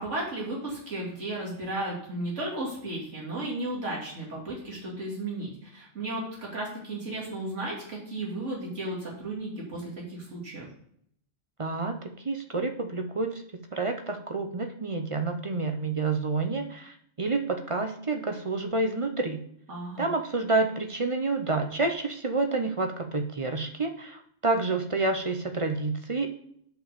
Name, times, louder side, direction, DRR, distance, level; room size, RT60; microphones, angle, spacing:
voice 1, 0.0-10.7 19.7-20.1, right 2 dB, 75° right, -4 dB, 2.8 m, -34 dB
voice 2, 11.6-11.9 12.2-13.4 13.7-19.4 20.0-26.3, right 3 dB, 35° right, 5 dB, 0.6 m, -29 dB
6.2 x 5.2 x 6.7 m, 0.68 s
omnidirectional pair, 1.2 m